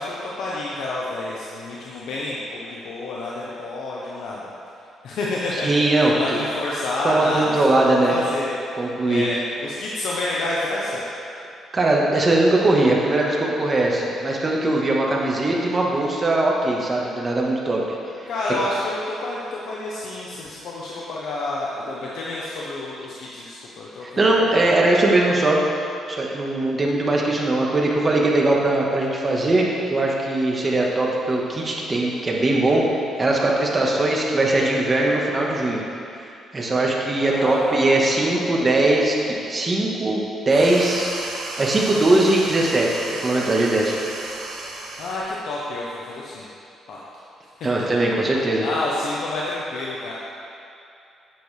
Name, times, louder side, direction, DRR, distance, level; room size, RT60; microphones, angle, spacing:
voice 1, 0.0-4.5 5.0-8.6 9.1-11.0 18.3-24.5 37.1-37.9 38.2-38.4 45.0-46.5 46.9-47.0 48.6-50.1, left 2 dB, 75° left, -5 dB, 1.1 m, -29 dB
voice 2, 5.5-6.4 7.0-8.2 8.7-9.2 11.7-18.3 24.0-25.6 26.1-35.8 36.2-41.1 41.6-44.0 47.6-48.6, right 2 dB, 30° right, -2 dB, 1.6 m, -20 dB
sound 1, 40.5-45.3, right 3 dB, 85° right, 1.2 m, -33 dB
9.3 x 9.0 x 3.5 m, 2.6 s
cardioid pair, 90°, 0 cm